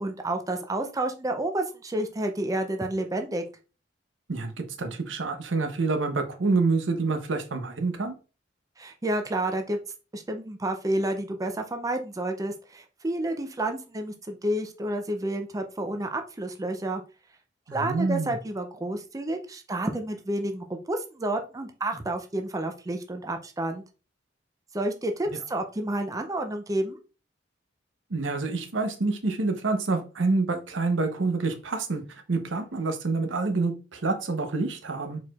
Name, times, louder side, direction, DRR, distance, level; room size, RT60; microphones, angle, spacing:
voice 1, 0.0-3.4 8.8-9.8 10.1-17.0 17.7-23.8 24.7-27.0, right 1 dB, 20° right, 5 dB, 0.4 m, -30 dB
voice 2, 4.3-8.1 17.7-18.3 28.1-32.0 32.3-35.2, right 3 dB, 85° right, 6 dB, 0.8 m, -27 dB
4.6 x 4.2 x 2.3 m, 0.33 s
head